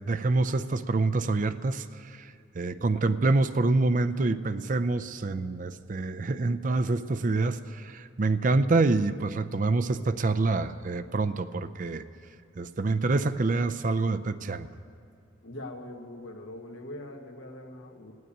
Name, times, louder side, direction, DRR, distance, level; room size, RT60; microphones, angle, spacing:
voice 1, 0.0-12.0 12.6-14.7, right 3 dB, 40° right, 12 dB, 0.5 m, -26 dB
voice 2, 15.4-18.1, left 1 dB, 90° left, 3 dB, 1.6 m, -42 dB
16.5 x 9.4 x 8.8 m, 2.5 s
head